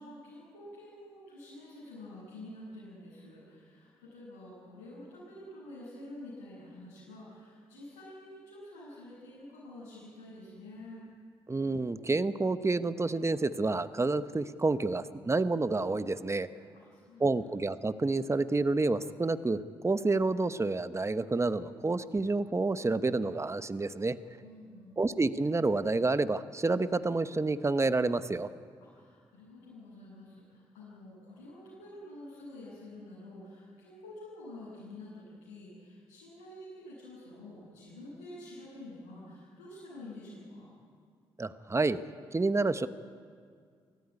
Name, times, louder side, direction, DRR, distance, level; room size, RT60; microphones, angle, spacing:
voice 1, 0.0-11.1 16.7-17.5 24.4-25.0 28.8-40.7, left 1 dB, 85° left, -9 dB, 7.5 m, -48 dB
voice 2, 11.5-16.5 17.2-24.2 25.0-28.5 41.4-42.9, right 3 dB, 25° right, 13 dB, 1.0 m, -29 dB
23.0 x 14.5 x 9.8 m, 2.1 s
hypercardioid pair, 45°, 12 cm